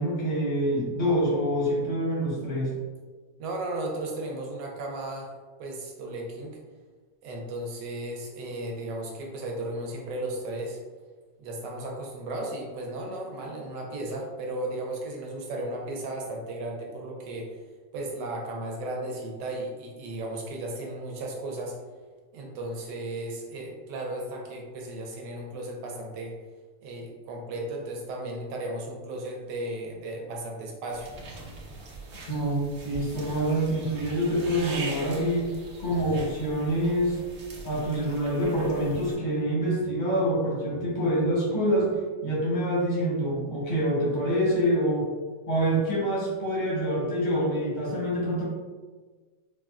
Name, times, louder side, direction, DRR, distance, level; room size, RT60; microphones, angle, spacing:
voice 1, 0.0-2.7 32.3-35.5 35.8-37.2 37.6-45.1 45.5-48.4, equal, 50° left, -6 dB, 0.5 m, -26 dB
voice 2, 3.4-5.3 5.6-6.6 7.2-10.8 11.4-17.6 17.9-21.7 22.3-26.3 26.8-31.1, right 1 dB, 80° right, 0 dB, 1.3 m, -35 dB
sound 1, 30.9-39.1, right 2 dB, 65° right, 0.8 m, -41 dB
4.0 x 2.1 x 2.3 m, 1.4 s
omnidirectional pair, 1.9 m